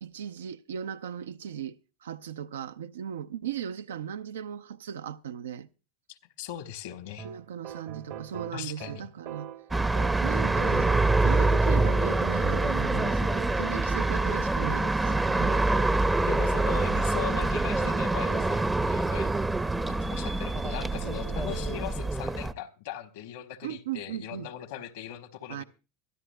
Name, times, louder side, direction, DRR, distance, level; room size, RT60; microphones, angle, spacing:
voice 1, 0.0-5.7 7.2-9.5 10.2-15.7 23.6-24.5 25.5-25.6, right 9 dB, 75° right, 0.5 m, -37 dB
voice 2, 6.1-7.3 8.5-9.1 16.2-19.3 19.9-25.6, left 11 dB, 65° left, 1.3 m, -39 dB
sound 1, 7.2-18.8 21.0-21.9, right 10 dB, 55° right, 1.1 m, -42 dB
sound 2, 9.7-22.5, right 2 dB, 10° right, 0.6 m, -25 dB
23.0 x 12.5 x 2.2 m
figure-of-eight pair, 80°, 0 cm